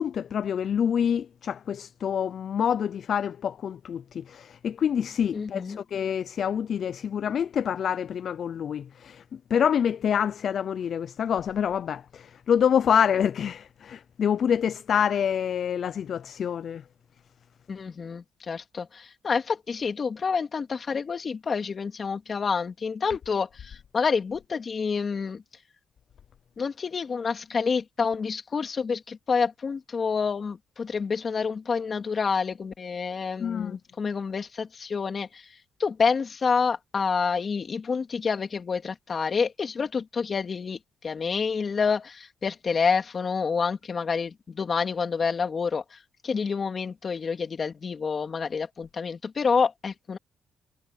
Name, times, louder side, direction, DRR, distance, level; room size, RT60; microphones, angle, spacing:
voice 1, 0.0-16.8 33.4-33.8, left 8 dB, 60° left, 0.5 m, -26 dB
voice 2, 5.3-5.8 17.7-25.4 26.6-35.5 35.8-40.8 41.0-46.0 46.2-50.2, left 5 dB, 40° left, 3.2 m, -28 dB
cardioid pair, 90°, 0 cm